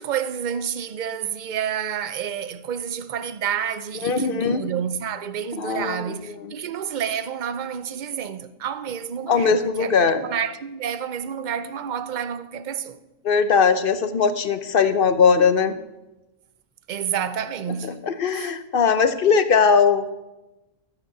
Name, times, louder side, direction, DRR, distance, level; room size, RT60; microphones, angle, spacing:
voice 1, 0.0-9.9 10.2-13.0 16.9-18.0 18.3-18.5, right 8 dB, 45° right, 0.7 m, -29 dB
voice 2, 4.0-4.6 5.6-6.2 6.4-6.5 9.3-10.3 13.2-15.7 17.8-20.1, left 5 dB, 50° left, 0.9 m, -20 dB
13.0 x 9.2 x 6.9 m
omnidirectional pair, 1.4 m